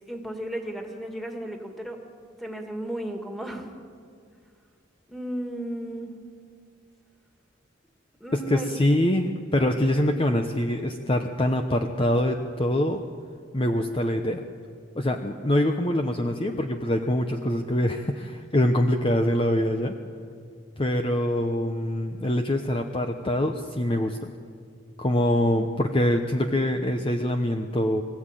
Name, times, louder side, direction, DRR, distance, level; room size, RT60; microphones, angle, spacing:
voice 1, 0.0-2.0 2.4-3.7 5.1-6.1 8.2-8.8, right 1 dB, ahead, 2 dB, 2.3 m, -34 dB
voice 2, 8.3-13.0 13.5-14.4 14.9-19.9 20.8-24.3 25.0-28.0, left 1 dB, 30° left, 5 dB, 0.9 m, -24 dB
23.5 x 15.0 x 9.1 m, 2.3 s
head